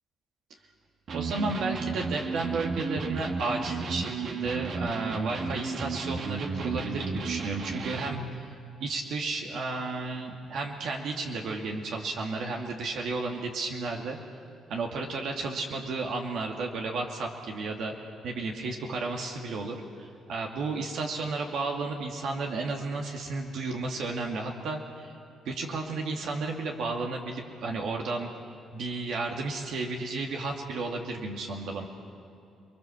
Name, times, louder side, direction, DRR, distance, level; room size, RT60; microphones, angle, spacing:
Electric guitar, 1.1-8.4, right 4 dB, 60° right, 1.9 m, -33 dB
voice 1, 1.1-8.5 8.8-14.2 14.7-17.9 18.2-25.1 25.5-28.3 28.7-31.9, right 3 dB, 75° right, 1 dB, 2.4 m, -33 dB
29.5 x 21.0 x 7.3 m, 2.6 s
cardioid pair, 90°, 0 cm